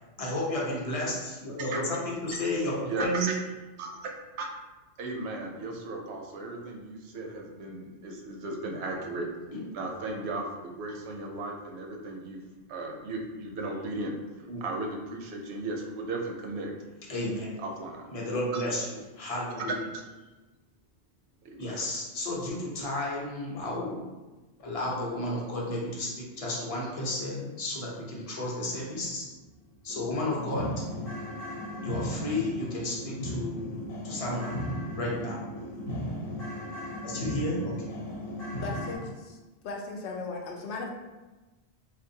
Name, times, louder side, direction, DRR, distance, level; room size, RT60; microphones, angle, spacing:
voice 1, 0.2-3.3 9.5-9.6 14.5-14.6 17.1-17.5 18.1-19.8 21.6-24.1 24.6-29.3 29.8-30.8 31.8-33.7 34.0-34.6 35.0-35.4 37.0-37.9, left 1 dB, 35° left, -4 dB, 0.7 m, -32 dB
voice 2, 2.9-3.4 3.8-4.5 5.0-9.3 9.7-12.4 12.7-16.7 17.6-18.0 18.5-18.6 19.5-19.6 21.4-21.8, right 2 dB, 75° right, 1 dB, 0.8 m, -36 dB
sound 1, 29.0-29.1 29.5-29.6 29.9-39.0, equal, 60° left, 0.9 m, -36 dB
voice 3, 38.6-39.4 39.6-41.0, left 3 dB, 85° left, 1 dB, 0.9 m, -37 dB
3.7 x 2.5 x 2.7 m, 1.2 s
omnidirectional pair, 1.1 m